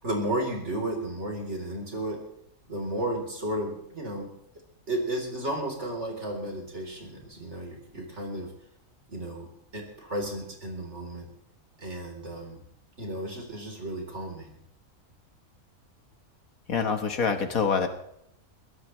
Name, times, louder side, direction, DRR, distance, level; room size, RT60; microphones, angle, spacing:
voice 1, 0.0-2.2 2.7-4.3 4.9-8.5 9.1-11.3 11.8-12.6 13.0-14.5, right 1 dB, 55° right, 1 dB, 4.2 m, -33 dB
voice 2, 16.7-17.9, left 5 dB, 80° left, 6 dB, 2.0 m, -25 dB
23.0 x 16.5 x 3.3 m, 0.72 s
omnidirectional pair, 1.5 m